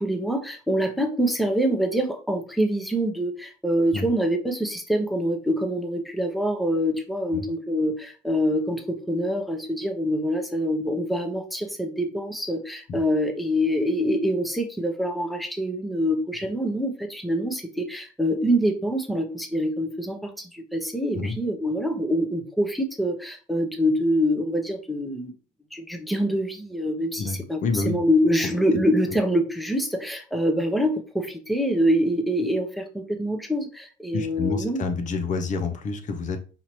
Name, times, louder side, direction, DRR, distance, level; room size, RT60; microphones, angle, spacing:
voice 1, 0.0-25.3 25.7-34.8, equal, ahead, 4 dB, 0.8 m, -25 dB
voice 2, 27.2-28.0 28.4-28.5 34.1-36.4, left 4 dB, 50° left, 6 dB, 0.7 m, -28 dB
5.6 x 2.8 x 3.1 m, 0.37 s
cardioid pair, 110°, 17 cm